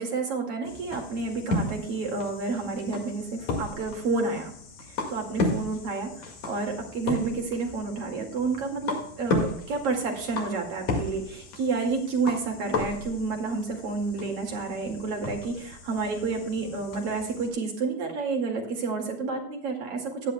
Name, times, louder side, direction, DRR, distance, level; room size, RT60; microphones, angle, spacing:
voice 1, 0.0-4.5 4.9-20.3, right 4 dB, 50° right, 2 dB, 2.8 m, -30 dB
sound 1, 0.6-17.5, left 2 dB, 60° left, 3.0 m, -34 dB
15.5 x 10.5 x 2.2 m, 0.63 s
omnidirectional pair, 3.8 m